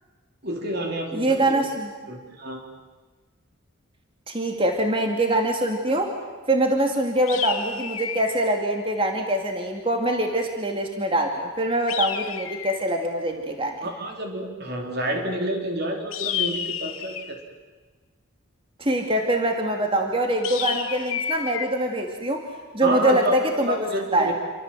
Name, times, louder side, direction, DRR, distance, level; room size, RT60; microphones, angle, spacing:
voice 1, 0.4-1.6 2.1-2.6 13.8-17.4 22.8-24.3, right 1 dB, 50° right, 2 dB, 4.1 m, -29 dB
voice 2, 1.1-1.9 4.3-6.1 6.5-13.9 18.8-22.5 22.7-23.8 24.1-24.3, right 1 dB, 25° right, 3 dB, 2.6 m, -24 dB
sound 1, 7.3-8.4 11.9-12.9 16.1-17.4 20.4-21.7, left 9 dB, 70° left, 2.8 m, -30 dB
28.5 x 26.0 x 7.7 m, 1.4 s
head